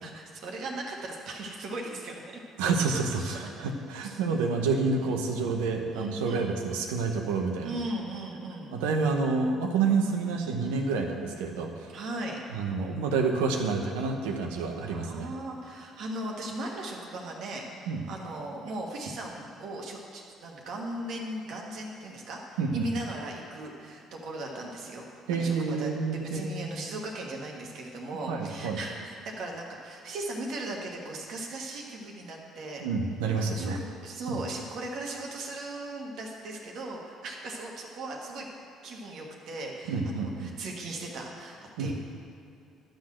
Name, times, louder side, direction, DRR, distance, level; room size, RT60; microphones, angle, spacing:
voice 1, 0.0-2.2 3.2-3.4 4.0-4.2 5.0-5.2 5.9-6.6 7.6-8.8 11.9-12.4 14.9-32.8 33.3-38.5 38.8-41.9, right 2 dB, 70° right, 0 dB, 1.6 m, -38 dB
voice 2, 2.6-7.7 8.7-11.7 12.5-15.3 17.9-18.0 22.6-22.8 25.3-26.7 28.3-28.8 32.8-33.8 34.3-34.4 39.9-40.5 41.8-41.9, right 4 dB, 90° right, 3 dB, 0.9 m, -28 dB
12.0 x 4.0 x 7.6 m, 2.5 s
supercardioid pair, 70°, 0 cm